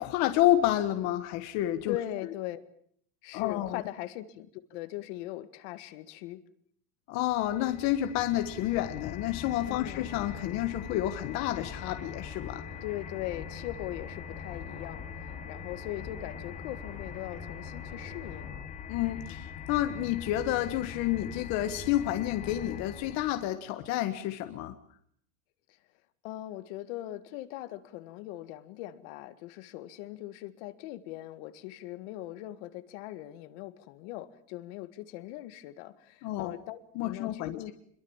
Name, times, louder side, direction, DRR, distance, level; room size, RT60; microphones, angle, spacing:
voice 1, 0.0-2.0 3.3-3.8 7.1-12.6 18.9-24.7 36.2-36.6 36.9-37.7, left 13 dB, 40° left, 8 dB, 1.5 m, -29 dB
voice 2, 1.9-2.6 3.2-6.4 9.7-10.1 12.8-18.6 26.2-37.7, left 15 dB, 60° left, 12 dB, 1.9 m, -40 dB
sound 1, 7.3-23.5, left 9 dB, 20° left, 0.9 m, -42 dB
sound 2, 10.1-18.6, right 9 dB, 55° right, 4.2 m, -52 dB
26.5 x 22.0 x 7.3 m, 0.65 s
cardioid pair, 180°, 41 cm